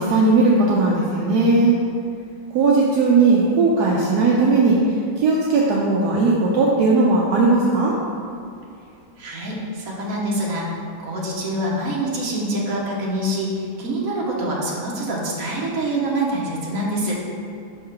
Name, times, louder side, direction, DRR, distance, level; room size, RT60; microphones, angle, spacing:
voice 1, 0.0-1.7 2.5-4.8 5.2-8.0, right 3 dB, 70° right, -4 dB, 1.0 m, -17 dB
voice 2, 9.2-10.7 11.0-17.1, right 1 dB, 50° right, -4 dB, 1.3 m, -25 dB
5.5 x 3.6 x 5.7 m, 2.5 s
omnidirectional pair, 2.2 m